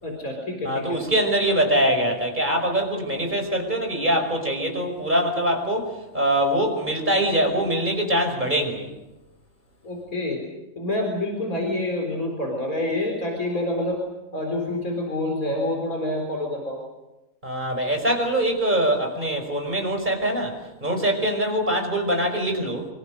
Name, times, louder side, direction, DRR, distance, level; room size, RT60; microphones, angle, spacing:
voice 1, 0.0-1.0 9.8-10.4 10.8-14.0 14.3-16.8, left 1 dB, 80° left, 1 dB, 4.7 m, -27 dB
voice 2, 0.6-8.9 17.4-22.9, right 1 dB, 35° right, 4 dB, 5.5 m, -23 dB
25.5 x 25.5 x 6.5 m, 0.97 s
omnidirectional pair, 1.5 m